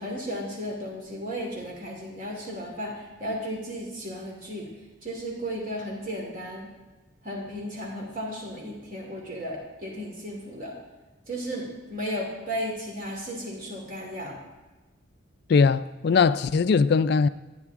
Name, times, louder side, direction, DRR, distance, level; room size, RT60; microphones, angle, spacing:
voice 1, 0.0-4.7 5.0-6.7 7.2-10.7 11.3-14.4, equal, 45° right, 2.8 m, -34 dB
voice 2, 15.5-17.3, left 5 dB, 55° left, 0.3 m, -20 dB
13.5 x 10.0 x 3.6 m
head